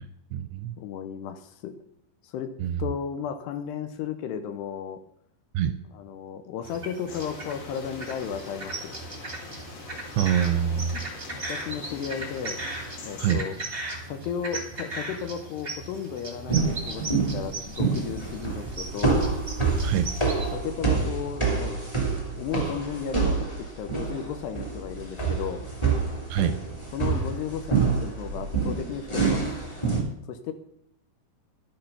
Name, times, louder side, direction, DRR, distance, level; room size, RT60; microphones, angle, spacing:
voice 1, 0.0-0.8 2.6-2.8 5.5-5.8 10.2-11.1 13.2-13.4 19.8-20.1 26.3-26.6, right 9 dB, 80° right, 10 dB, 2.5 m, -25 dB
voice 2, 0.8-1.8 2.2-2.5 2.8-5.0 5.9-8.9 11.3-12.6 13.0-13.6 14.0-17.1 17.3-19.3 20.5-21.8 22.4-25.6 26.9-29.4 30.3-30.5, left 8 dB, 80° left, 9 dB, 2.7 m, -34 dB
sound 1, 6.6-20.5, right 2 dB, 25° right, 1.1 m, -38 dB
sound 2, 7.1-13.3, left 4 dB, 50° left, 3.1 m, -43 dB
sound 3, 16.5-30.0, right 4 dB, 10° left, 2.2 m, -27 dB
12.5 x 9.1 x 5.7 m, 0.72 s
omnidirectional pair, 5.3 m